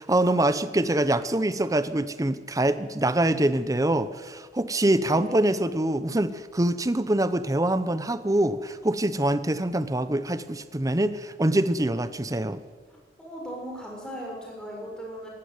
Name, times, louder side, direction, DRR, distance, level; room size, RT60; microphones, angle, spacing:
voice 1, 0.0-12.6, right 1 dB, 20° right, 13 dB, 0.8 m, -24 dB
voice 2, 5.1-5.6 13.2-15.3, equal, 5° left, -2 dB, 6.7 m, -38 dB
17.5 x 15.5 x 9.6 m, 1.4 s
head